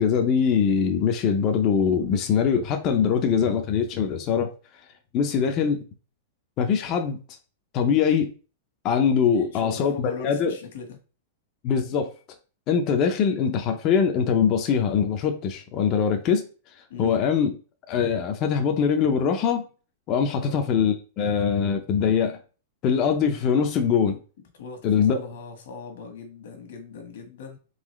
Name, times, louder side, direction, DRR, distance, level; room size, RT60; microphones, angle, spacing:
voice 1, 0.0-4.5 5.1-5.8 6.6-7.2 7.7-8.3 8.8-10.5 11.6-12.1 12.7-16.4 17.0-17.5 17.9-19.6 20.1-22.4 22.8-24.2 24.8-25.2, left 7 dB, 25° left, 0.5 m, -22 dB
voice 2, 9.3-11.0 16.9-17.2 20.3-20.6 24.5-27.6, left 5 dB, 60° left, 1.3 m, -40 dB
3.9 x 3.7 x 3.1 m
supercardioid pair, 175°, 0 cm